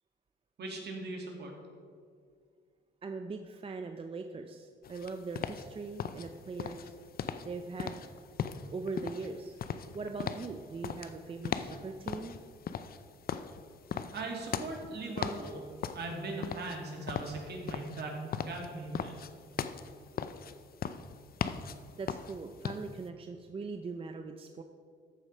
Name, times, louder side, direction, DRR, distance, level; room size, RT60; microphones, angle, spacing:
voice 1, 0.6-1.5 14.1-15.6 15.9-19.2, right 2 dB, 55° right, 0 dB, 2.3 m, -39 dB
voice 2, 3.0-6.9 7.4-8.0 8.7-9.6 9.9-12.4 22.0-24.6, right 4 dB, 30° right, 6 dB, 0.6 m, -41 dB
sound 1, 4.8-23.1, left 7 dB, 50° left, 0.5 m, -39 dB
13.5 x 4.8 x 5.4 m, 2.2 s
cardioid pair, 90°, 20 cm